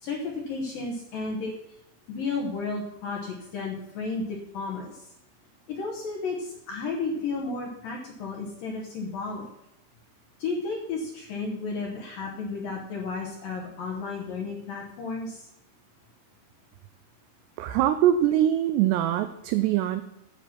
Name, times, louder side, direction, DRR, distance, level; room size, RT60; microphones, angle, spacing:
voice 1, 0.0-1.5 2.1-5.0 5.7-9.5 10.4-15.5, left 4 dB, 65° left, -1 dB, 2.3 m, -33 dB
voice 2, 17.6-20.0, right 11 dB, 85° right, 10 dB, 2.4 m, -23 dB
9.9 x 8.1 x 6.0 m, 0.83 s
omnidirectional pair, 5.4 m